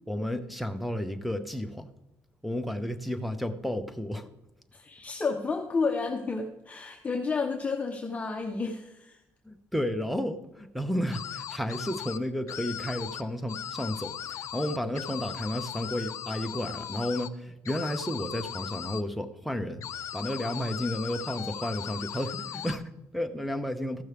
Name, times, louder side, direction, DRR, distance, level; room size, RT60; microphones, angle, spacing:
voice 1, 0.1-1.9 2.4-4.3 9.4-19.8 20.1-24.0, equal, ahead, 10 dB, 0.8 m, -32 dB
voice 2, 4.7-9.2, left 4 dB, 25° left, 3 dB, 0.8 m, -31 dB
sound 1, 11.1-12.2 12.5-13.2 13.5-17.3 17.6-19.0 19.8-22.8, left 10 dB, 65° left, 0.5 m, -38 dB
14.5 x 6.2 x 3.4 m, 0.92 s
cardioid pair, 105°, 6 cm